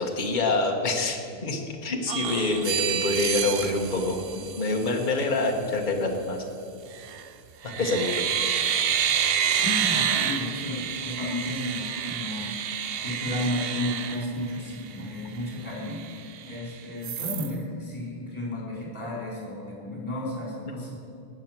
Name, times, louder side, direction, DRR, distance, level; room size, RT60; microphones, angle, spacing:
voice 1, 0.0-6.4 7.6-8.3, left 2 dB, 45° left, 1 dB, 1.5 m, -26 dB
sound 1, 2.1-5.1 6.9-7.3 7.6-14.9 15.3-15.4 15.7-16.6 17.0-17.5, right 8 dB, 65° right, 0.9 m, -28 dB
voice 2, 9.5-21.0, left 1 dB, 25° left, -5 dB, 4.2 m, -33 dB
19.0 x 6.3 x 7.3 m, 2.4 s
omnidirectional pair, 1.1 m